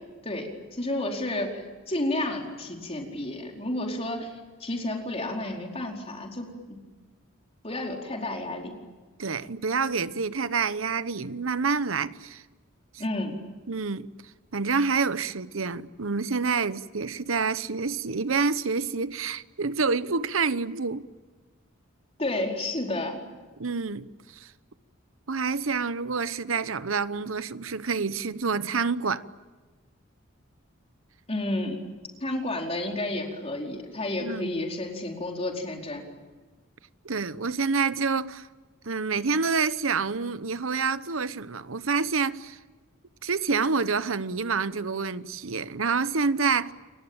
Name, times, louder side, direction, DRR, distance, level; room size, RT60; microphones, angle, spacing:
voice 1, 0.2-4.3 4.6-6.8 7.6-8.8 13.0-13.4 22.2-23.2 31.3-31.8 32.2-36.0, left 1 dB, 30° left, 4.7 m, -31 dB
voice 2, 9.2-12.4 13.7-14.1 14.5-21.1 23.6-24.5 25.3-29.2 34.2-34.5 37.0-38.5 38.8-42.6 43.2-46.7, right 5 dB, 85° right, 1.0 m, -27 dB
29.5 x 22.5 x 8.9 m
head